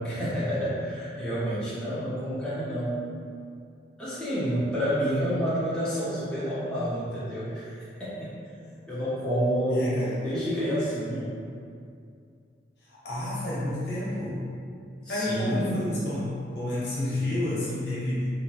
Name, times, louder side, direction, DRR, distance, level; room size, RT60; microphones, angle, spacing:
voice 1, 0.0-3.0 4.0-7.7 8.0-8.4 8.9-9.9 10.2-11.4 15.0-15.8, equal, 5° left, -12 dB, 0.6 m, -29 dB
voice 2, 9.7-10.3 12.8-14.5 15.1-18.3, left 1 dB, 75° left, -8 dB, 0.8 m, -30 dB
2.8 x 2.1 x 2.6 m, 2.4 s
head